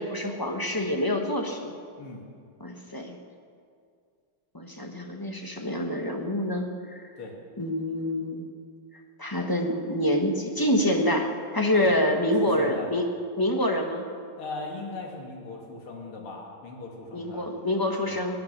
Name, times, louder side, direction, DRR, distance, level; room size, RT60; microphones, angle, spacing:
voice 1, 0.0-1.7 2.6-3.2 4.5-7.0 7.6-8.5 9.2-13.1 13.4-14.1 17.1-18.4, left 1 dB, 15° left, 3 dB, 0.9 m, -26 dB
voice 2, 12.4-12.9 14.4-17.5 18.1-18.2, left 3 dB, 80° left, 0 dB, 2.9 m, -38 dB
22.0 x 9.4 x 6.7 m, 2.2 s
omnidirectional pair, 2.3 m